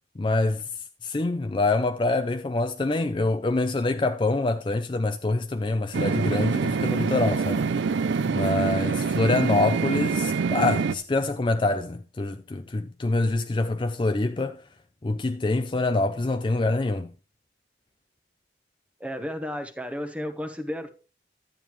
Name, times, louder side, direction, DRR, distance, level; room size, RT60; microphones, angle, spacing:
voice 1, 0.2-0.6 1.0-7.6 8.3-14.6 15.0-17.1, left 2 dB, 25° left, 0.4 m, -25 dB
sound 1, 5.9-10.9, right 5 dB, 80° right, 0.4 m, -25 dB
voice 2, 19.0-20.9, equal, 5° right, 1.0 m, -33 dB
12.0 x 8.9 x 3.1 m
head